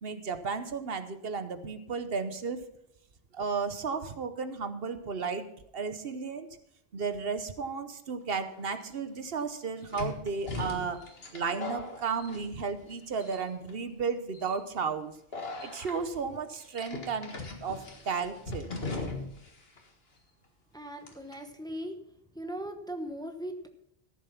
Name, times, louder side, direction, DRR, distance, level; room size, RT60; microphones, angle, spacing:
voice 1, 0.0-2.6 3.3-5.5 5.7-6.5 6.9-11.0 11.3-15.1 15.6-17.3 17.6-18.7, right 5 dB, 70° right, 10 dB, 1.1 m, -33 dB
sound 1, 8.6-8.7 9.9-12.9 13.2-13.7 14.3-14.6 15.3-15.9 16.7-19.5 19.8-19.9 21.1-21.3, left 3 dB, 70° left, 1.9 m, -39 dB
voice 2, 20.7-22.0 22.3-23.7, right 1 dB, 5° left, 5 dB, 1.0 m, -38 dB
14.0 x 7.5 x 5.9 m, 0.75 s
omnidirectional pair, 1.0 m